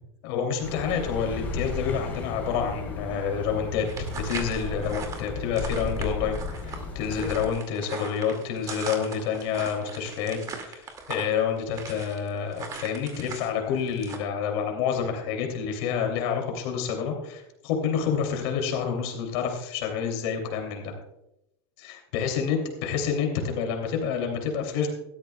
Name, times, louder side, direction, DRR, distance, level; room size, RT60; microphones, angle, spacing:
voice 1, 0.2-3.9 4.2-20.9 21.8-24.9, left 7 dB, 60° left, 3 dB, 2.9 m, -28 dB
Accelerating revving vroom, 0.6-7.5, left 3 dB, 10° left, 4.0 m, -34 dB
sound 1, 3.9-13.5 13.8-14.2, right 5 dB, 25° right, 2.3 m, -39 dB
16.5 x 13.0 x 2.3 m, 0.86 s
supercardioid pair, 155°, 14 cm